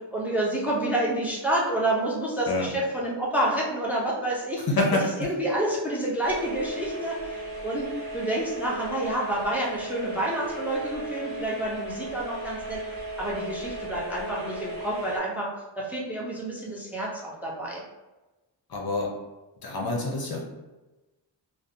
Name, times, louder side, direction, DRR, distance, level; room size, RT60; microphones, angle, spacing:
voice 1, 0.1-4.6 5.2-7.9 8.1-12.8 13.2-15.5 15.8-17.8, right 1 dB, 5° right, -4 dB, 0.5 m, -28 dB
voice 2, 4.7-5.3 18.7-19.1 19.6-20.4, left 2 dB, 50° left, -1 dB, 0.6 m, -26 dB
sound 1, 6.2-15.2, right 2 dB, 85° right, 1.0 m, -36 dB
2.6 x 2.1 x 2.6 m, 1.1 s
wide cardioid pair, 80°, 46 cm